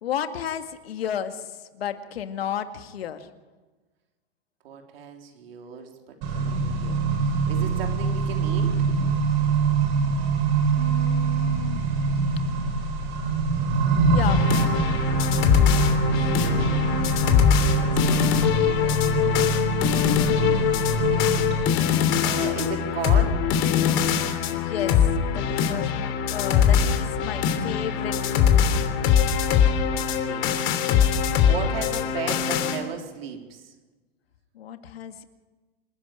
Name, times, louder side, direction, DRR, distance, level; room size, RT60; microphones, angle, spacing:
voice 1, 0.0-3.3 9.0-9.1 10.7-11.9 14.1-14.5 24.5-25.0 25.3-28.5 34.5-35.2, left 9 dB, 80° left, 8 dB, 2.2 m, -33 dB
voice 2, 4.6-9.0 15.7-17.2 17.5-19.6 20.4-21.4 22.2-23.4 29.4-30.6 31.1-33.7, right 6 dB, 70° right, 3 dB, 3.9 m, -37 dB
Accelerating revving vroom, 6.2-21.6, right 4 dB, 50° right, 8.0 m, -24 dB
sound 1, 14.3-32.8, left 8 dB, 40° left, 3.2 m, -22 dB
27.5 x 11.0 x 9.1 m, 1.2 s
hypercardioid pair, 125°, 30 cm